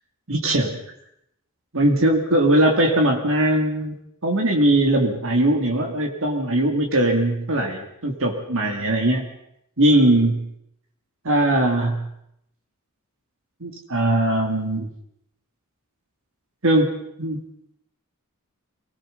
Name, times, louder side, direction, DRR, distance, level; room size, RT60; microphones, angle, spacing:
voice 1, 0.3-0.8 1.7-4.0 4.2-9.3 9.8-10.5 11.2-12.1 13.6-14.9 16.6-17.4, right 1 dB, 65° right, 3 dB, 3.1 m, -20 dB
25.0 x 20.0 x 5.6 m, 0.77 s
head